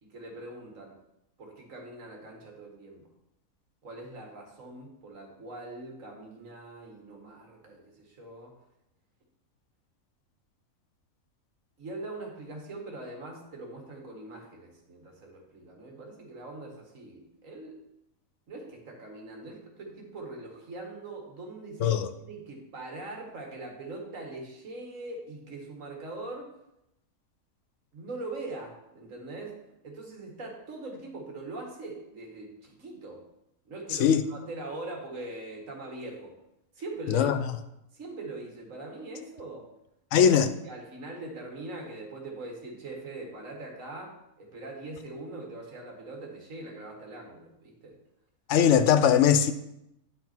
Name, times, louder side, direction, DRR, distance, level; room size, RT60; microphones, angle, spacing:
voice 1, 0.0-1.0 1.4-3.1 3.8-8.5 11.8-17.8 18.5-26.6 27.9-33.3 33.7-36.4 36.8-37.3 37.9-39.7 40.2-40.3 40.6-48.0, right 2 dB, 65° right, 2.0 m, -42 dB
voice 2, 37.1-37.4 40.1-40.5 48.5-49.5, left 8 dB, 65° left, 0.9 m, -20 dB
10.0 x 5.7 x 4.4 m
omnidirectional pair, 1.5 m